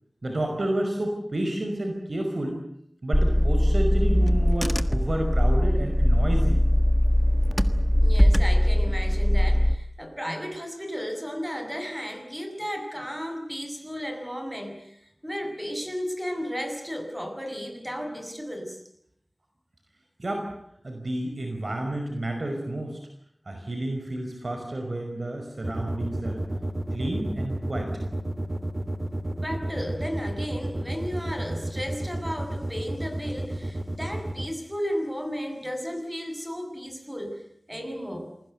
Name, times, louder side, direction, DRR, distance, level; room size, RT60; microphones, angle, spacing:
voice 1, 0.2-2.6 3.0-6.6 20.2-20.5 20.8-23.0 23.5-26.4 26.9-27.9, right 1 dB, 60° right, 3 dB, 5.3 m, -30 dB
Car / Engine, 3.1-9.7, equal, 5° left, 1.5 m, -21 dB
voice 2, 8.0-18.8 29.3-37.4 37.7-38.3, equal, 10° right, 5 dB, 7.2 m, -34 dB
sound 1, 25.6-34.5, right 1 dB, 30° right, 2.3 m, -31 dB
28.5 x 21.0 x 8.1 m, 0.72 s
wide cardioid pair, 70°, 0 cm